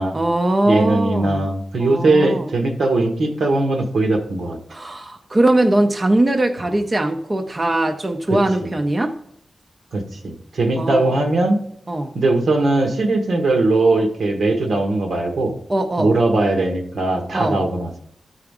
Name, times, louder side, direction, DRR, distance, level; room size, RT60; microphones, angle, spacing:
voice 1, 0.0-1.4 1.8-2.5 4.7-9.2 10.8-11.1 11.9-12.1 15.7-16.1 17.3-17.6, right 1 dB, 30° right, 5 dB, 0.6 m, -20 dB
voice 2, 0.7-4.6 8.3-8.7 9.9-11.6 12.1-15.6 16.0-17.9, right 2 dB, 80° right, 3 dB, 1.4 m, -19 dB
13.0 x 4.9 x 3.6 m, 0.68 s
wide cardioid pair, 115°, 0 cm